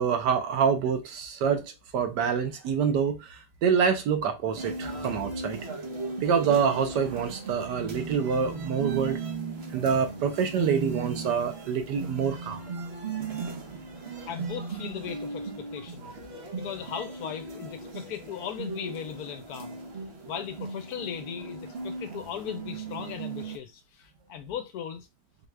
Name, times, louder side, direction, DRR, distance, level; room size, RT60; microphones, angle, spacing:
voice 1, 0.0-5.6 6.2-9.2 9.7-12.6 16.0-16.1, right 6 dB, 80° right, 1.4 m, -26 dB
sound 1, 4.6-23.6, right 4 dB, 45° right, 0.9 m, -37 dB
voice 2, 14.3-16.1 16.6-19.8 20.3-25.1, left 9 dB, 70° left, 1.1 m, -38 dB
4.6 x 2.4 x 3.2 m
omnidirectional pair, 1.8 m